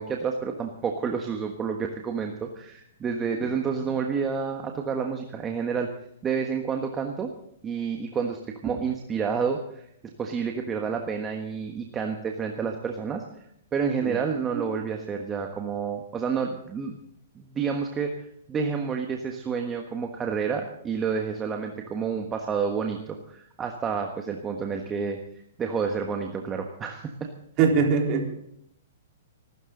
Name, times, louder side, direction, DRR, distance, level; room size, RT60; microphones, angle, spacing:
voice 1, 0.0-5.9 6.2-7.3 7.6-9.9 10.2-13.2 13.7-16.9 17.3-18.2 18.5-27.3, right 6 dB, 15° right, 3 dB, 1.4 m, -29 dB
voice 2, 27.6-28.3, right 5 dB, 30° right, 2 dB, 3.9 m, -22 dB
24.5 x 13.0 x 3.9 m, 0.73 s
hypercardioid pair, 155°, 0 cm